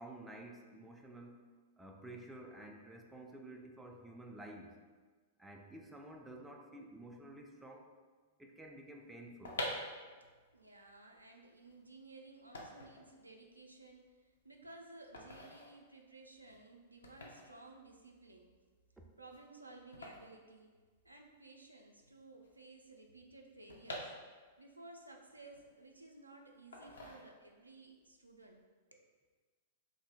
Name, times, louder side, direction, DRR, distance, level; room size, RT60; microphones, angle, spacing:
voice 1, 0.0-1.4 1.8-4.8 5.4-7.9 8.4-9.6, right 1 dB, 5° right, 1 dB, 0.3 m, -51 dB
sound 1, 9.2-21.3 21.6-21.7 21.9-24.7 25.1-26.2 26.7-27.7 28.1-28.4, left 1 dB, 65° left, 0.5 m, -48 dB
voice 2, 10.0-18.5 19.2-20.8 21.0-28.6 28.9-29.1, right 2 dB, 85° right, 2 dB, 0.3 m, -56 dB
2.7 x 2.6 x 3.4 m, 1.4 s
figure-of-eight pair, 100°, 0 cm